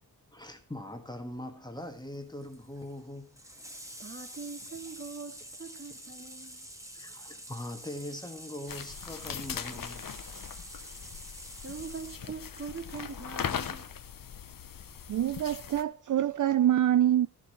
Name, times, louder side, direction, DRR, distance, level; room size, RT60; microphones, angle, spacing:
voice 1, 0.3-3.4 6.9-10.0 10.4-10.5, left 1 dB, 10° left, 1.7 m, -41 dB
Water tap faucet / Sink (filling or washing), 1.8-13.6 15.0-15.1, right 1 dB, 10° right, 1.7 m, -48 dB
voice 2, 4.0-6.7 11.6-13.9, right 5 dB, 30° right, 2.4 m, -42 dB
sound 1, 8.7-15.8, left 8 dB, 55° left, 1.0 m, -40 dB
voice 3, 15.1-17.3, right 11 dB, 50° right, 0.5 m, -25 dB
15.0 x 11.5 x 3.2 m
wide cardioid pair, 135°, 40 cm